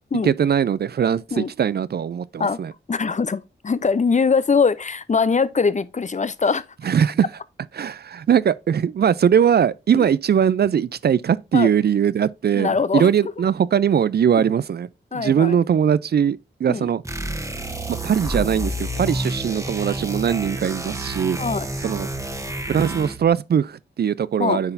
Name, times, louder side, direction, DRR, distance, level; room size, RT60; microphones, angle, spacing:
voice 1, 0.2-2.7 6.8-7.2 7.8-14.9 15.1-17.0 17.9-21.4 21.8-22.1 22.7-24.7, right 8 dB, 55° right, 0.4 m, -20 dB
voice 2, 2.9-6.6 9.9-10.1 11.5-11.7 12.5-13.1 15.1-15.6 16.7-16.9 21.4-21.7 24.4-24.6, left 5 dB, 40° left, 0.6 m, -22 dB
sound 1, 17.0-23.3, right 1 dB, 15° right, 1.2 m, -29 dB
9.7 x 4.0 x 2.6 m
cardioid pair, 50°, 20 cm